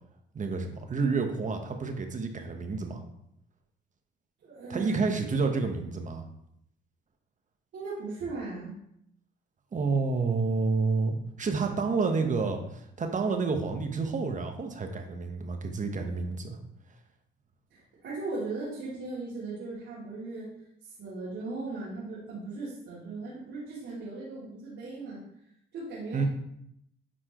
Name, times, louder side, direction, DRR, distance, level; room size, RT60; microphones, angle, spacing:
voice 1, 0.3-3.0 4.7-6.2 9.7-16.6 26.1-26.3, right 4 dB, 40° right, 5 dB, 1.2 m, -29 dB
voice 2, 4.4-5.0 7.7-8.8 17.7-20.5 20.8-25.2 25.7-26.3, right 3 dB, 75° right, -9 dB, 2.8 m, -38 dB
10.0 x 4.6 x 3.1 m, 0.76 s
cardioid pair, 90°, 20 cm